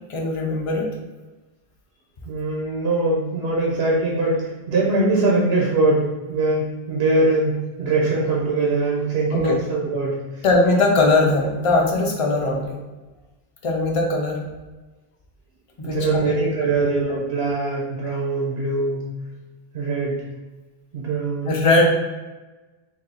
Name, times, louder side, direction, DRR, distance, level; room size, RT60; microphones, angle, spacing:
voice 1, 0.1-0.9 9.3-9.6 10.4-12.8 13.6-14.4 15.8-16.3 16.6-16.7 21.5-21.9, left 2 dB, 35° left, 0 dB, 0.7 m, -20 dB
voice 2, 2.2-10.2 15.8-19.0 19.7-20.2 20.9-21.6, right 2 dB, 80° right, -3 dB, 1.0 m, -22 dB
3.4 x 2.7 x 4.0 m, 1.2 s
omnidirectional pair, 1.0 m